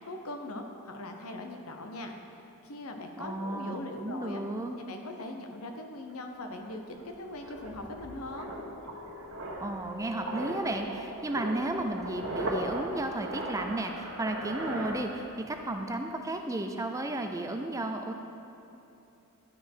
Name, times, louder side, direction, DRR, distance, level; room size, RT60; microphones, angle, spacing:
voice 1, 0.1-2.2 2.6-4.4 4.9-8.5, left 2 dB, 70° left, 4 dB, 0.8 m, -40 dB
voice 2, 3.2-4.8 9.6-18.1, right 1 dB, 15° right, 5 dB, 0.4 m, -33 dB
sound 1, 6.1-6.2 6.5-15.6 15.8-16.1, right 1 dB, 60° right, 1.3 m, -38 dB
sound 2, 7.5-13.5, left 2 dB, 90° left, 1.9 m, -51 dB
11.5 x 5.3 x 4.5 m, 2.9 s
head